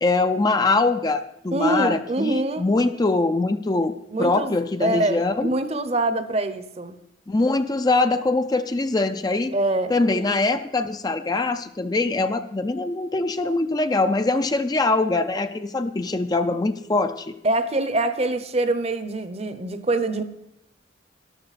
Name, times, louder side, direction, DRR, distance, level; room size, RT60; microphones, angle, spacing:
voice 1, 0.0-3.9 4.2-5.5 7.3-9.6 9.9-17.3, left 3 dB, 20° left, 9 dB, 0.4 m, -23 dB
voice 2, 1.5-2.7 4.1-7.0 9.5-10.5 17.4-20.2, right 2 dB, 35° right, 11 dB, 0.8 m, -25 dB
13.5 x 11.5 x 4.1 m, 0.82 s
head